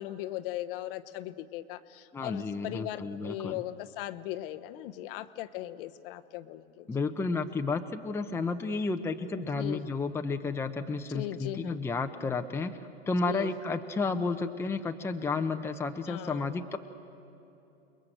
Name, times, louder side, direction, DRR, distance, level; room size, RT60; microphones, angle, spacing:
voice 1, 0.0-6.9 9.3-9.8 11.1-11.8 13.3-13.5 16.1-16.7, left 14 dB, 50° left, 10 dB, 0.9 m, -38 dB
voice 2, 2.1-3.6 6.9-12.7 13.1-16.8, left 3 dB, 5° left, 6 dB, 0.8 m, -32 dB
29.0 x 21.0 x 7.9 m, 2.9 s
hypercardioid pair, 120°, 35 cm